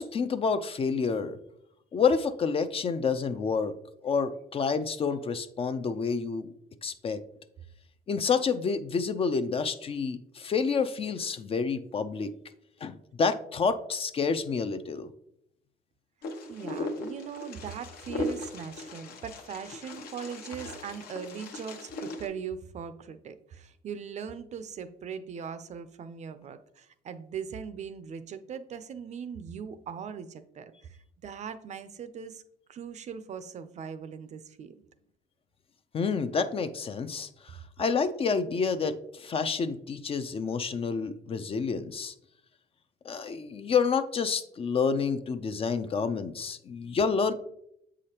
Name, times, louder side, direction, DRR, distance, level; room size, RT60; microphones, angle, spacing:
voice 1, 0.0-1.4 1.9-3.8 4.0-6.5 6.8-7.2 8.1-12.3 12.8-15.1 35.9-42.1 43.0-47.3, left 5 dB, 35° left, 11 dB, 0.4 m, -29 dB
Wind, 16.2-22.3, left 2 dB, 65° left, 0.9 m, -38 dB
voice 2, 16.3-32.4 32.7-34.8, right 7 dB, 45° right, 11 dB, 0.5 m, -40 dB
7.5 x 4.9 x 2.9 m, 0.76 s
cardioid pair, 110°, 17 cm